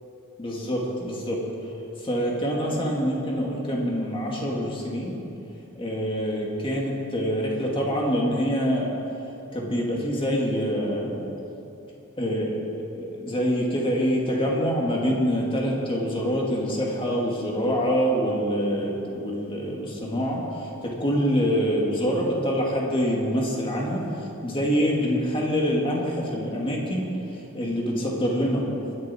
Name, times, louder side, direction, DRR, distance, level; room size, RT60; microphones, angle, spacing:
voice 1, 0.4-1.4 2.0-5.1 5.8-8.9 9.5-11.3 12.2-28.6, equal, 25° left, -2 dB, 2.5 m, -25 dB
22.0 x 11.0 x 4.5 m, 2.9 s
head